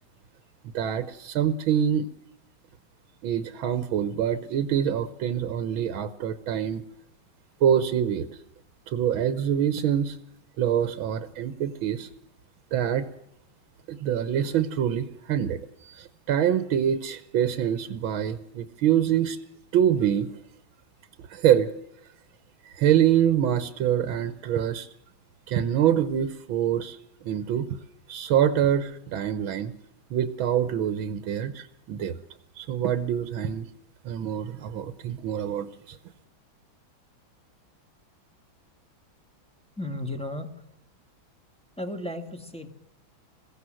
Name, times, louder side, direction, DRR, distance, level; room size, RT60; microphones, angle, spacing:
voice 1, 0.7-2.1 3.2-6.8 7.6-8.3 8.9-10.2 10.6-12.1 12.7-13.1 13.9-19.4 19.7-20.3 21.3-21.7 22.7-24.9 25.5-27.0 27.2-27.7 28.1-29.7 30.1-32.2 32.6-33.7 34.1-36.0, right 9 dB, 85° right, 11 dB, 1.8 m, -25 dB
voice 2, 39.8-40.5 41.8-42.7, left 1 dB, 5° left, 6 dB, 1.8 m, -34 dB
22.0 x 16.5 x 7.7 m, 0.78 s
omnidirectional pair, 2.2 m